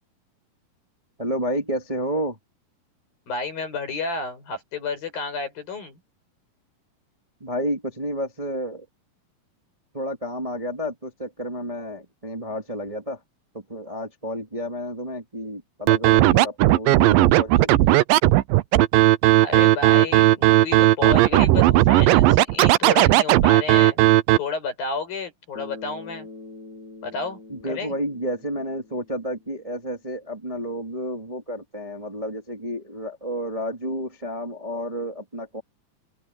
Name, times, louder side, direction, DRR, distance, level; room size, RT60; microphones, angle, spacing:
voice 1, 1.2-2.4 7.4-8.8 9.9-13.2 13.5-17.7 27.5-35.6, equal, 15° right, 1.5 m, -31 dB
voice 2, 3.3-6.0 19.4-24.0 24.4-26.3 27.0-27.9, left 4 dB, 75° left, 8.5 m, -31 dB
Scratching (performance technique), 15.9-24.4, right 16 dB, 80° right, 2.4 m, -16 dB
Bass guitar, 25.5-29.8, left 3 dB, 30° left, 5.1 m, -44 dB
open air
omnidirectional pair, 4.1 m